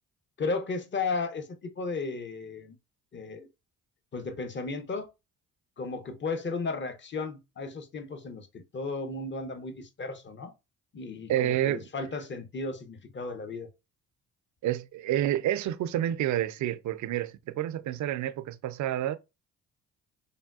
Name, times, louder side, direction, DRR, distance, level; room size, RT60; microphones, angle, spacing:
voice 1, 0.4-2.8 3.1-3.5 4.1-5.1 5.8-10.5 10.9-13.7, left 3 dB, 30° left, 0.7 m, -34 dB
voice 2, 11.3-11.8 14.6-19.2, right 12 dB, 55° right, 0.4 m, -29 dB
3.4 x 2.2 x 2.3 m
supercardioid pair, 55°, 37 cm